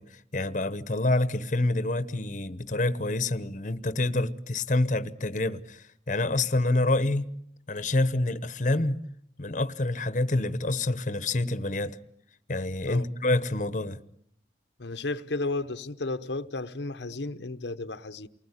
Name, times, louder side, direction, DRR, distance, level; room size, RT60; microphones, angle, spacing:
voice 1, 0.0-7.3 7.7-9.0 9.4-12.0 12.5-14.0, left 2 dB, 45° left, 1.0 m, -27 dB
voice 2, 14.8-18.3, left 2 dB, 85° left, 1.0 m, -33 dB
29.0 x 20.0 x 9.8 m
head